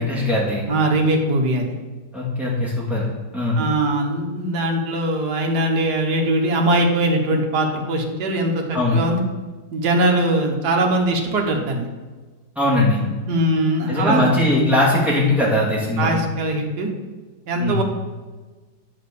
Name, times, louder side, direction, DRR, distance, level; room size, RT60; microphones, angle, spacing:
voice 1, 0.0-0.6 2.1-3.6 8.7-9.0 12.6-13.0 13.9-16.1 17.6-17.8, left 1 dB, ahead, -5 dB, 2.1 m, -20 dB
voice 2, 0.7-1.7 3.6-9.2 9.7-11.9 13.0-14.3 16.0-16.9 17.5-17.8, right 1 dB, 65° right, 2 dB, 1.6 m, -21 dB
8.7 x 4.2 x 6.7 m, 1.3 s
omnidirectional pair, 2.0 m